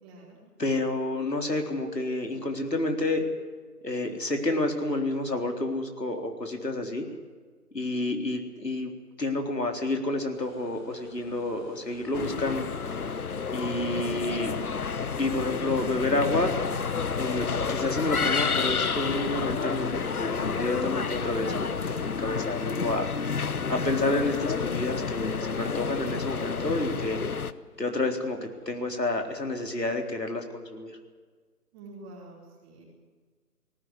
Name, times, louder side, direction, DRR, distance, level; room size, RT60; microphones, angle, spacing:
voice 1, 0.0-0.4 31.7-32.8, right 2 dB, 15° right, -2 dB, 4.6 m, -47 dB
voice 2, 0.6-3.2 3.8-7.1 7.7-8.9 9.2-12.7 13.5-14.5 15.2-16.5 17.2-23.1 23.7-27.2 27.8-31.0, left 2 dB, 85° left, 3 dB, 4.0 m, -29 dB
sound 1, 10.4-30.2, left 3 dB, 15° left, 3.0 m, -45 dB
sound 2, 12.1-27.5, left 5 dB, 65° left, 1.1 m, -30 dB
18.5 x 18.5 x 9.7 m, 1.5 s
figure-of-eight pair, 155°, 48 cm